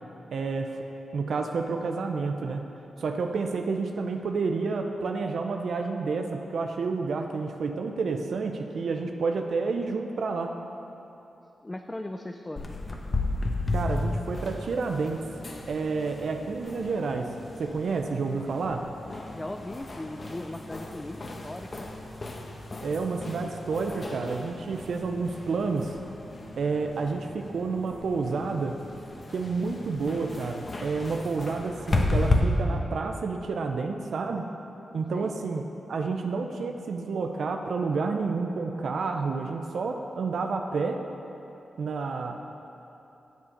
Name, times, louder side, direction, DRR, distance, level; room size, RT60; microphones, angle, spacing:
voice 1, 0.3-0.8 1.1-2.7 3.0-10.5 13.7-15.3 15.7-17.3 17.6-18.9 22.8-25.9 26.6-28.8 29.3-34.4 34.9-41.0 41.8-42.4, right 4 dB, 70° right, 4 dB, 0.6 m, -29 dB
voice 2, 11.6-12.7 19.3-21.9 35.1-35.3, left 1 dB, 20° left, 5 dB, 0.5 m, -38 dB
sound 1, 12.6-32.4, left 2 dB, 40° left, 1.1 m, -34 dB
8.1 x 7.3 x 6.6 m, 3.0 s
cardioid pair, 65°, 0 cm